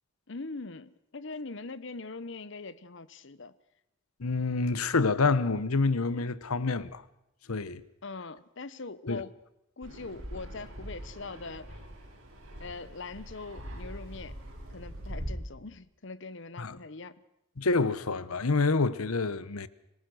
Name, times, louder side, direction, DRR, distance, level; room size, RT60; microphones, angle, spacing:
voice 1, 0.3-3.5 8.0-9.3 9.8-11.7 12.6-14.3 14.7-17.2, left 3 dB, 55° left, 0.9 m, -42 dB
voice 2, 4.2-7.0 7.5-7.8 9.1-9.2 16.6-16.8 17.6-19.7, left 3 dB, 85° left, 1.0 m, -27 dB
Fixed-wing aircraft airplane, 9.8-15.3, equal, 85° right, 5.7 m, -42 dB
25.5 x 19.0 x 6.3 m
head